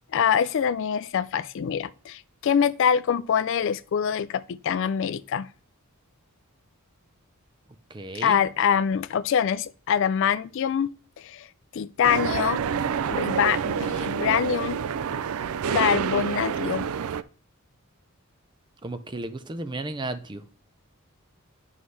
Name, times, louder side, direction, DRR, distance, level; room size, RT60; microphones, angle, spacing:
voice 1, 0.1-5.5 8.1-10.9 11.2-11.5 11.7-12.6 13.1-14.8 15.7-16.9, left 8 dB, 60° left, 0.3 m, -24 dB
voice 2, 7.9-8.5 18.8-20.4, right 2 dB, 20° right, 0.5 m, -34 dB
sound 1, 12.0-17.2, right 7 dB, 80° right, 0.4 m, -28 dB
9.7 x 5.5 x 3.2 m
head